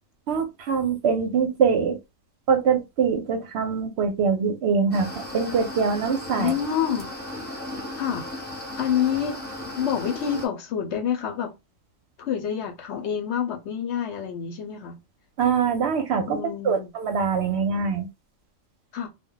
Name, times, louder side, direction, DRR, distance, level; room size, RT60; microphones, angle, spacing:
voice 1, 0.3-2.0 2.5-6.5 15.4-16.4 16.6-18.1, right 6 dB, 65° right, 0.8 m, -23 dB
sound 1, 4.9-10.5, left 1 dB, 10° left, 0.7 m, -36 dB
voice 2, 6.4-7.1 8.0-8.3 8.8-9.4 9.8-11.5 12.2-14.9 16.3-16.9 18.9-19.1, left 8 dB, 65° left, 0.8 m, -27 dB
2.2 x 2.1 x 3.7 m
omnidirectional pair, 1.3 m